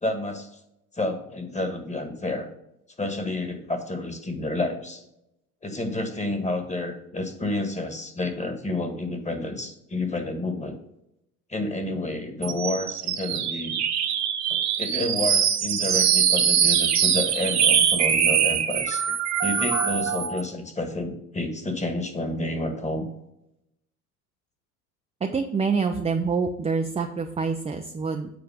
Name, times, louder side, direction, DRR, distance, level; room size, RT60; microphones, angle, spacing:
voice 1, 0.0-0.5 1.0-2.5 3.0-5.0 5.6-10.8 11.5-13.8 14.5-19.0 19.4-23.1, left 2 dB, 15° left, 6 dB, 1.6 m, -30 dB
sound 1, 12.4-20.4, right 8 dB, 40° right, 1.2 m, -23 dB
voice 2, 25.2-28.3, right 5 dB, 15° right, 4 dB, 0.6 m, -26 dB
8.3 x 4.6 x 4.9 m, 0.83 s
hypercardioid pair, 80°, 44 cm